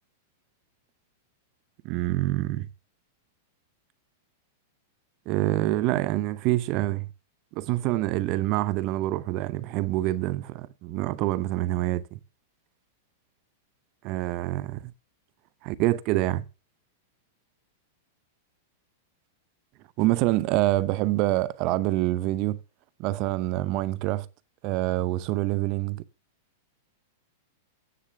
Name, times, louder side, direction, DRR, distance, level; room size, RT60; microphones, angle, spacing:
voice 1, 1.8-2.7 5.3-7.1 7.5-12.2 14.0-14.9 15.6-16.4 20.0-22.6 23.0-24.3 24.6-26.0, right 16 dB, 45° right, 0.7 m, -26 dB
9.5 x 6.7 x 6.5 m
hypercardioid pair, 115°, 0 cm